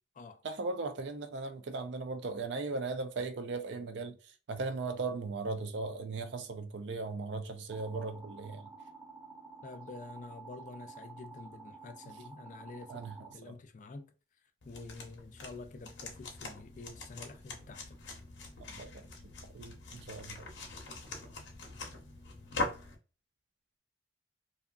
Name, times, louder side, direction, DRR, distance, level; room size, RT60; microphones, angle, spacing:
voice 1, 0.4-8.7 12.9-13.5 18.6-19.1 19.5-20.5, right 3 dB, 80° right, 0.5 m, -38 dB
sound 1, 7.7-13.3, right 4 dB, 15° right, 0.8 m, -51 dB
voice 2, 9.6-13.0 13.3-14.1 14.7-18.1, left 3 dB, 45° left, 0.3 m, -48 dB
sound 2, 14.6-23.0, left 2 dB, 90° left, 0.7 m, -43 dB
2.7 x 2.4 x 2.3 m
head